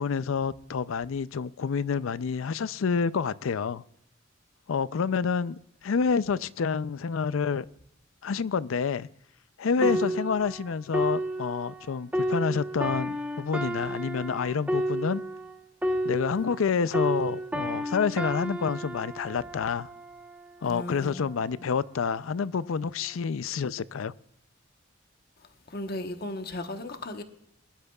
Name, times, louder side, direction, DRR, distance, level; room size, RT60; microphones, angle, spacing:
voice 1, 0.0-3.8 4.7-7.7 8.2-9.1 9.6-15.2 16.0-19.9 20.6-24.1, left 5 dB, 80° left, 0.5 m, -28 dB
sound 1, 9.8-16.7 16.9-20.5 21.2-21.4, equal, 5° right, 1.0 m, -31 dB
voice 2, 20.7-21.2 21.6-21.7 25.7-27.2, left 1 dB, 50° left, 1.1 m, -36 dB
22.0 x 12.0 x 2.3 m
head